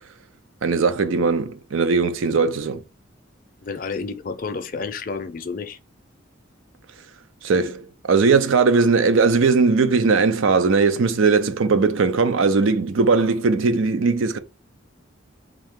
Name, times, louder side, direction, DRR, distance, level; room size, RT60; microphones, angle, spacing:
voice 1, 0.6-2.8 7.4-14.4, right 4 dB, 80° right, 0.5 m, -19 dB
voice 2, 3.6-5.8, left 4 dB, 45° left, 0.5 m, -30 dB
3.6 x 2.8 x 3.6 m
head